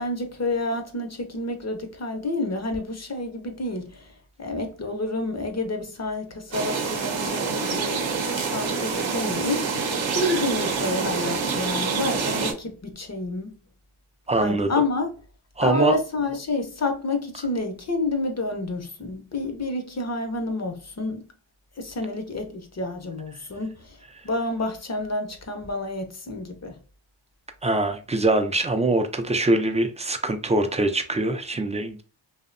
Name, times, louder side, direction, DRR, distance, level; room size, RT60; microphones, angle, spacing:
voice 1, 0.0-13.5 14.4-15.1 15.6-21.3 21.8-26.8, left 2 dB, 35° left, 0.6 m, -29 dB
sound 1, 6.5-12.5, right 5 dB, 70° right, 0.7 m, -26 dB
voice 2, 14.3-14.7 15.6-16.0 27.6-32.0, right 2 dB, 15° right, 0.3 m, -23 dB
2.6 x 2.0 x 2.5 m
cardioid pair, 50°, 48 cm